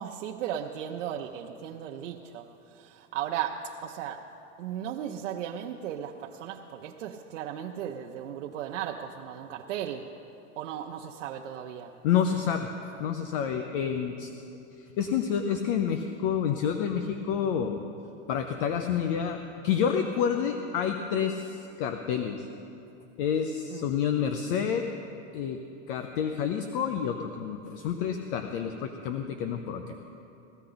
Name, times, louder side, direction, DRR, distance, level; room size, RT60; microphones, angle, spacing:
voice 1, 0.0-4.3 4.6-10.1 10.6-11.9 23.7-23.9, right 9 dB, 85° right, 2 dB, 0.8 m, -36 dB
voice 2, 12.0-12.7 13.0-14.3 14.8-17.8 18.3-22.5 23.2-24.8 25.3-25.6 25.9-30.0, left 8 dB, 50° left, 6 dB, 0.7 m, -29 dB
16.5 x 14.5 x 3.9 m, 2.9 s
supercardioid pair, 165°, 36 cm